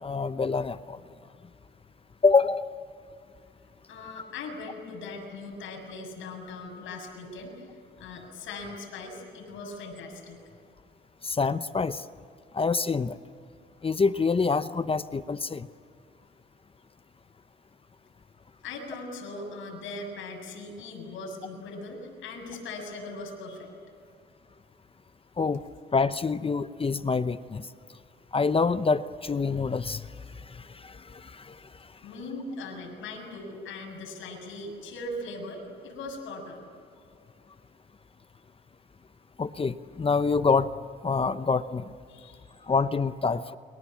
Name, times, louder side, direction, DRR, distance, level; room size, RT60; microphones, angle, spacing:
voice 1, 0.0-1.0 2.2-2.7 11.2-12.0 12.5-13.2 13.8-15.7 25.4-25.6 25.9-27.7 28.3-30.1 30.5-31.6 39.4-40.7 41.0-41.8 42.7-43.6, left 4 dB, 30° left, 13 dB, 0.8 m, -26 dB
voice 2, 3.9-7.7 8.0-10.4 18.6-23.7 32.0-36.6 42.1-42.5, left 2 dB, 85° left, 2 dB, 7.2 m, -40 dB
30.0 x 25.0 x 7.4 m, 2.3 s
cardioid pair, 90°, 20 cm